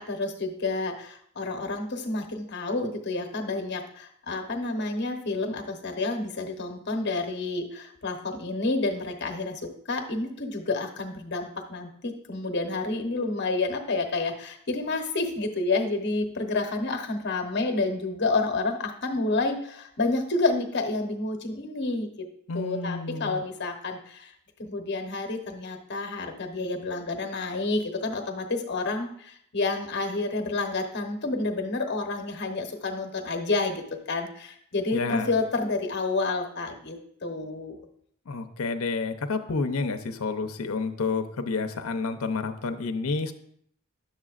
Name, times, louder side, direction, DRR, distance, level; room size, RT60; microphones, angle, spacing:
voice 1, 0.0-22.1 22.5-24.3 24.6-37.8, left 3 dB, 50° left, 4 dB, 0.9 m, -29 dB
voice 2, 22.5-23.4 34.9-35.3 38.3-43.3, left 4 dB, 70° left, 7 dB, 0.6 m, -30 dB
10.5 x 7.3 x 2.4 m, 0.67 s
head